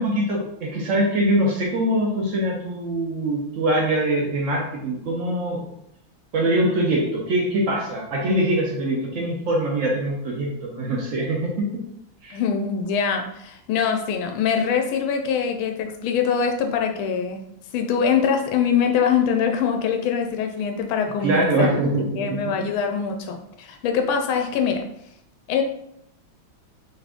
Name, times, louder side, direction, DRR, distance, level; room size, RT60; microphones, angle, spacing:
voice 1, 0.0-5.6 6.3-11.8 12.2-12.4 21.2-22.2, right 1 dB, 80° right, -2 dB, 0.7 m, -23 dB
voice 2, 12.3-17.4 17.7-21.8 22.1-24.8 25.5-25.6, left 6 dB, 90° left, 4 dB, 1.4 m, -23 dB
3.8 x 2.4 x 3.5 m, 0.74 s
omnidirectional pair, 2.2 m